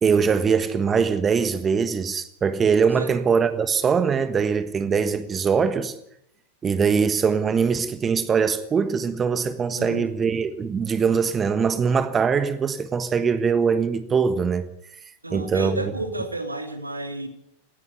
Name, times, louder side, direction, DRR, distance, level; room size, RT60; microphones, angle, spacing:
voice 1, 0.0-5.9 6.6-14.6 15.3-15.8, right 6 dB, 20° right, 1.4 m, -22 dB
voice 2, 9.7-10.1 15.2-17.3, right 2 dB, 80° right, 2.7 m, -31 dB
19.0 x 15.5 x 9.6 m
figure-of-eight pair, 90°, 0 cm